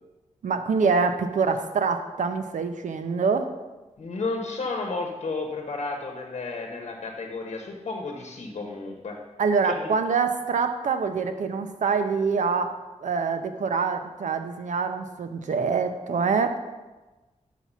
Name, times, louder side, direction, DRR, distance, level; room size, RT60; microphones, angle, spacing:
voice 1, 0.4-3.5 9.4-12.7 13.0-16.6, right 5 dB, 85° right, 8 dB, 0.7 m, -25 dB
voice 2, 4.0-9.2 9.7-9.9, left 3 dB, 60° left, 2 dB, 1.0 m, -32 dB
5.9 x 5.6 x 6.0 m, 1.2 s
wide cardioid pair, 175°, 13 cm